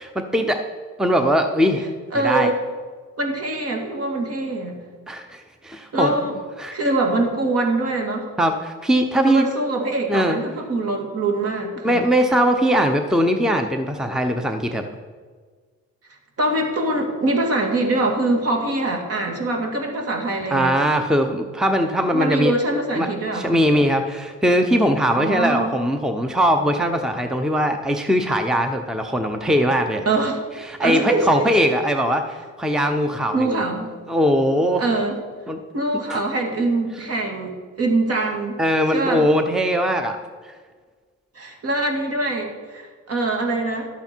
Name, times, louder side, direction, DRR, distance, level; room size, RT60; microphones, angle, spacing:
voice 1, 0.1-0.6 1.0-1.9 2.2-2.5 5.1-6.1 6.6-6.8 8.4-9.5 10.1-10.4 11.8-14.8 20.5-22.5 22.9-23.1 23.3-30.0 30.6-33.6 34.1-34.8 35.5-35.6 36.1-36.2 38.6-40.2 40.4-40.5, equal, ahead, 6 dB, 0.7 m, -20 dB
voice 2, 2.1-2.5 3.2-4.8 5.9-6.3 6.7-8.3 9.3-12.0 16.4-20.7 22.1-23.6 25.2-25.7 30.1-30.4 30.8-31.8 33.3-33.9 34.8-35.2 35.7-38.6 38.9-39.3 41.4-43.9, right 2 dB, 50° right, 2 dB, 2.2 m, -23 dB
11.5 x 8.4 x 4.5 m, 1.5 s
cardioid pair, 90°, 30 cm